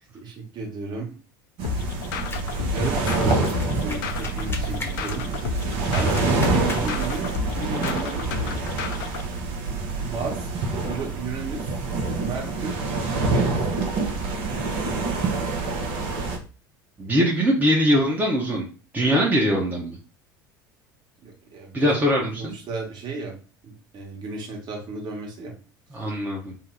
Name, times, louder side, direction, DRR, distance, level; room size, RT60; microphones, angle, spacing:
voice 1, 0.1-1.1 2.5-5.3 5.9-8.7 10.0-10.5 10.8-11.8 12.2-12.8 13.2-13.6 19.0-19.5 21.2-23.4 23.6-25.6, right 4 dB, 40° right, 0 dB, 1.2 m, -34 dB
sound 1, 1.6-9.3, left 7 dB, 70° left, 0.4 m, -31 dB
sound 2, 1.6-16.4, right 3 dB, 55° right, 0.7 m, -26 dB
sound 3, 2.3-5.7 6.0-8.0, left 3 dB, 20° left, 0.8 m, -40 dB
voice 2, 17.0-18.6 18.9-20.0 21.7-22.6 25.9-26.5, equal, 15° right, -1 dB, 0.8 m, -22 dB
2.7 x 2.0 x 3.7 m, 0.37 s
hypercardioid pair, 75°, 11 cm